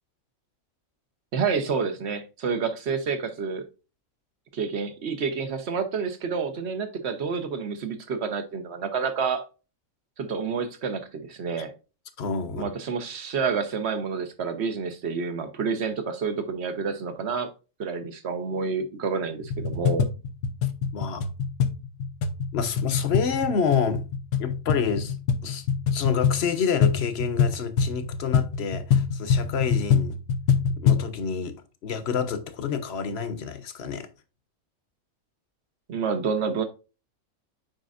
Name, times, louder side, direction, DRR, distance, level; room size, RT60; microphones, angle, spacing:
voice 1, 1.3-3.7 4.5-9.4 10.2-11.7 12.6-17.5 17.8-20.1 35.9-36.6, right 5 dB, 55° right, 1.2 m, -29 dB
voice 2, 12.2-12.7 20.9-21.2 22.5-24.0 24.4-25.1 25.4-30.1 30.8-31.6 31.8-34.1, left 6 dB, 55° left, 1.0 m, -28 dB
sound 1, 19.4-31.1, left 7 dB, 85° left, 1.2 m, -25 dB
7.6 x 5.2 x 2.5 m
omnidirectional pair, 1.4 m